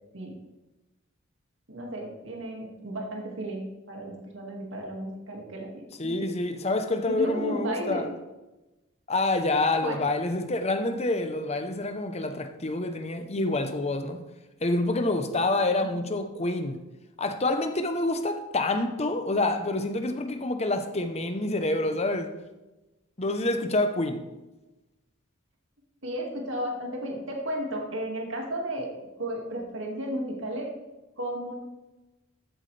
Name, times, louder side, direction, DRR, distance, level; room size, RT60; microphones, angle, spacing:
voice 1, 1.7-5.7 6.0-6.3 7.0-8.0 9.8-10.0 15.8-16.1 26.0-28.9 29.2-30.7 31.2-31.5, right 1 dB, 65° right, 2.2 m, -33 dB
voice 2, 6.0-8.1 9.1-14.2 14.6-16.8 17.2-22.3 23.2-24.2, left 2 dB, 30° left, 0.9 m, -27 dB
14.0 x 8.2 x 3.4 m
head